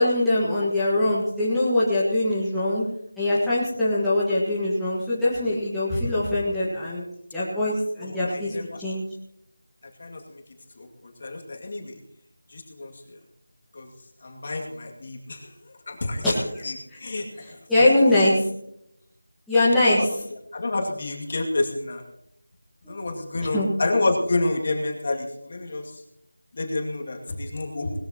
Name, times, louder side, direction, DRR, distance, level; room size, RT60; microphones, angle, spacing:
voice 1, 0.0-2.8 3.2-7.0 7.3-9.0 16.2-16.6 17.4-18.4 19.5-20.1 22.9-23.0 23.5-23.7, left 1 dB, ahead, -12 dB, 1.5 m, -22 dB
voice 2, 8.1-8.8 10.0-10.4 10.8-12.0 12.5-12.9 13.7-13.9 14.2-15.5 15.9-16.2 16.6-17.2 17.8-18.1 19.9-20.1 20.5-22.0 22.9-25.9 26.5-27.9, left 2 dB, 35° left, 1 dB, 2.4 m, -29 dB
20.0 x 14.0 x 3.0 m, 0.75 s
figure-of-eight pair, 175°, 0 cm